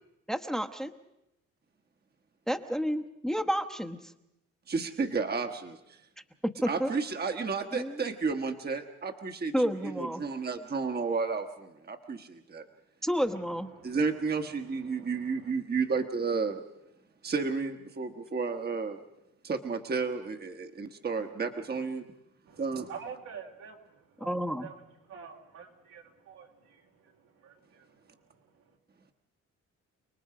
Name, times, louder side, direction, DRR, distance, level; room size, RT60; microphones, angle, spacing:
voice 1, 0.3-0.9 2.5-4.0 6.4-6.9 7.7-8.0 9.5-10.2 13.0-13.7 24.2-24.7, equal, ahead, 6 dB, 1.1 m, -30 dB
voice 2, 4.7-6.0 6.5-12.6 13.8-16.6 17.2-19.0 19.4-22.0 22.6-22.9, right 4 dB, 30° right, 6 dB, 1.4 m, -32 dB
voice 3, 13.2-15.5 22.5-28.8, right 6 dB, 80° right, 0 dB, 3.8 m, -49 dB
30.0 x 19.5 x 5.0 m, 0.86 s
cardioid pair, 90°, 30 cm